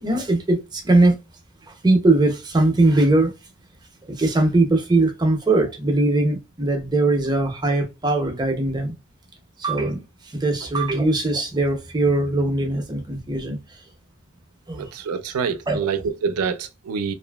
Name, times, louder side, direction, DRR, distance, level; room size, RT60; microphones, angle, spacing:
voice 1, 0.0-1.2 1.8-3.3 4.1-8.9 9.6-10.0 10.3-13.6 14.7-14.9 15.7-15.8, right 2 dB, 20° right, 0.6 m, -20 dB
voice 2, 14.7-17.1, right 6 dB, 85° right, 0.4 m, -26 dB
2.8 x 2.4 x 2.2 m
head